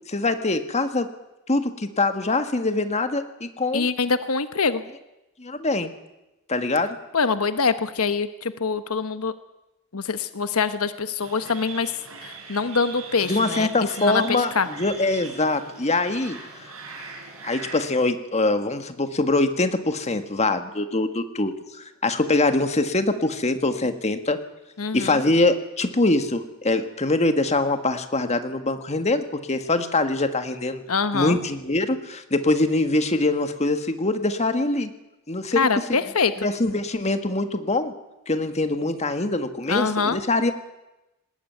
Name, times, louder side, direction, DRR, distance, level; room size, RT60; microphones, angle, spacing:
voice 1, 0.1-1.1 1.5-3.9 5.4-5.9 6.5-7.0 13.3-16.4 17.4-21.5 22.0-24.4 24.9-30.8 31.1-34.9 35.3-35.7 36.4-37.9 38.3-40.5, left 2 dB, 30° left, 8 dB, 1.7 m, -23 dB
voice 2, 3.7-4.8 7.1-9.3 9.9-11.9 12.2-14.7 24.8-25.2 30.9-31.4 35.5-36.5 39.7-40.2, left 5 dB, 80° left, 11 dB, 1.1 m, -24 dB
sound 1, 11.2-17.8, right 5 dB, 70° right, 5.6 m, -40 dB
19.5 x 18.0 x 9.3 m, 0.96 s
head